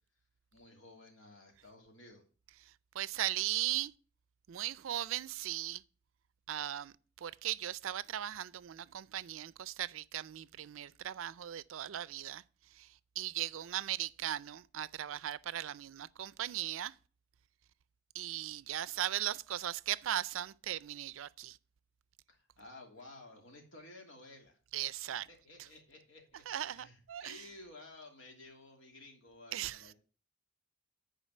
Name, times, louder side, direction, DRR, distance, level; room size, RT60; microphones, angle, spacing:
voice 1, 0.5-2.2 22.3-24.6 25.1-29.9, left 2 dB, 70° left, 2.8 m, -54 dB
voice 2, 2.9-3.9 4.5-5.8 6.5-12.4 12.7-12.9 13.2-16.9 18.1-21.6 24.7-25.3 25.6-25.7 26.5-27.4 29.5-29.9, right 12 dB, 85° right, 0.4 m, -38 dB
9.9 x 5.0 x 6.4 m
head